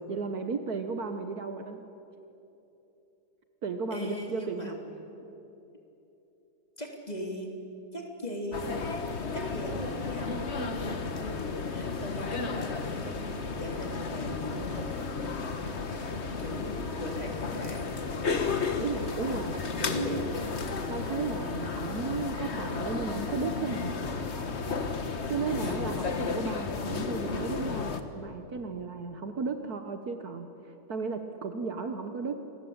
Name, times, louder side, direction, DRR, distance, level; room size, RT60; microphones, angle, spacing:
voice 1, 0.1-1.8 3.6-4.8 18.8-19.5 20.9-23.9 25.3-30.5 30.9-32.4, right 4 dB, 90° right, 7 dB, 0.8 m, -34 dB
voice 2, 3.9-4.7 6.8-7.5 7.9-8.7 9.3-15.2 15.6-15.7 16.4-18.0 19.3-20.3 25.5-25.7, left 1 dB, 15° left, 1 dB, 3.1 m, -39 dB
sound 1, 8.5-28.0, left 4 dB, 70° left, 0.6 m, -33 dB
28.5 x 20.5 x 8.7 m, 3.0 s
omnidirectional pair, 3.4 m